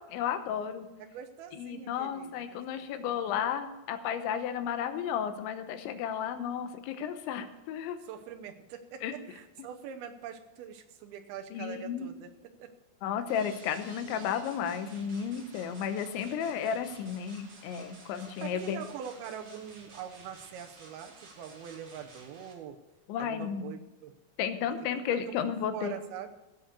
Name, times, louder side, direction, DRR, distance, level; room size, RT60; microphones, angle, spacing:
voice 1, 0.0-0.9 1.6-8.0 9.0-9.1 11.5-12.1 13.0-18.8 23.1-23.8 24.4-25.9, left 8 dB, 80° left, 9 dB, 3.1 m, -33 dB
voice 2, 1.0-3.1 8.0-12.3 12.6-12.7 18.3-22.8 23.2-24.1 24.6-24.9 25.3-26.3, right 8 dB, 85° right, 5 dB, 2.2 m, -44 dB
sound 1, 13.3-22.5, right 3 dB, 40° right, 2.1 m, -53 dB
16.5 x 6.5 x 6.7 m, 1.0 s
omnidirectional pair, 5.6 m